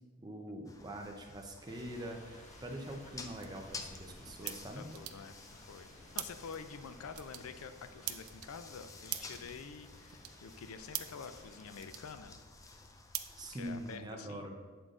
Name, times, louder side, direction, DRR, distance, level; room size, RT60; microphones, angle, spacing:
voice 1, 0.2-4.9 13.4-14.6, right 1 dB, 20° right, 2 dB, 0.7 m, -44 dB
sound 1, 0.6-14.0, left 3 dB, 15° left, 0.4 m, -53 dB
sound 2, 1.7-11.8, left 1 dB, 35° left, 1.0 m, -59 dB
sound 3, 2.6-14.1, right 13 dB, 90° right, 0.4 m, -48 dB
voice 2, 4.4-5.9 6.1-12.4 13.5-14.5, left 6 dB, 85° left, 10 dB, 0.4 m, -48 dB
8.1 x 3.8 x 3.7 m, 1.5 s
head